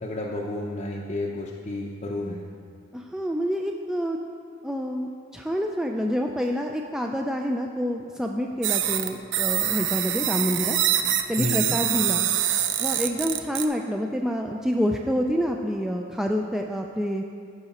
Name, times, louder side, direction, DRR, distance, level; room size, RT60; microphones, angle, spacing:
voice 1, 0.0-2.4 11.4-11.8, left 2 dB, 40° left, -2 dB, 0.6 m, -31 dB
voice 2, 2.9-4.2 4.6-10.8 11.3-12.3 12.8-17.2, equal, 5° right, 1 dB, 0.3 m, -27 dB
sound 1, 8.6-13.6, right 11 dB, 65° right, 0.5 m, -25 dB
14.5 x 4.9 x 4.2 m, 2.3 s
head